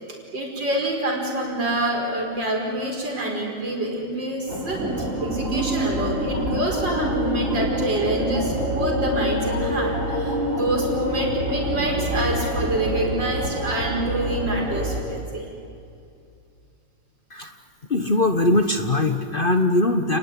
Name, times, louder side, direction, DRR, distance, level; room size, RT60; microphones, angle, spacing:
voice 1, 0.3-15.5, right 1 dB, 75° right, 1 dB, 5.8 m, -27 dB
sound 1, 4.5-15.0, equal, 45° right, 4.2 m, -26 dB
voice 2, 17.9-20.2, left 2 dB, 35° left, 7 dB, 1.2 m, -21 dB
29.5 x 20.0 x 9.9 m, 2.5 s
omnidirectional pair, 2.0 m